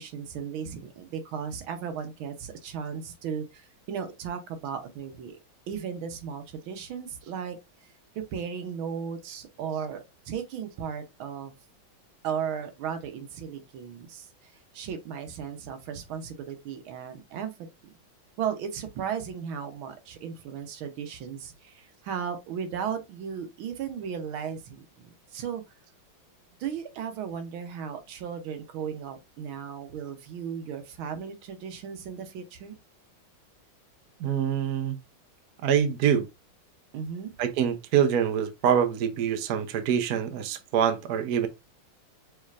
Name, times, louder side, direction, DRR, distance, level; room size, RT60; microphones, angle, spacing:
voice 1, 0.0-5.4 5.7-7.6 8.1-11.5 12.2-17.5 18.4-24.8 25.3-25.6 26.6-32.7 36.9-37.3, right 7 dB, 80° right, 1.6 m, -35 dB
voice 2, 34.2-34.9 35.6-36.3 37.4-41.5, right 8 dB, 60° right, 1.0 m, -25 dB
6.2 x 3.3 x 2.4 m
omnidirectional pair, 2.2 m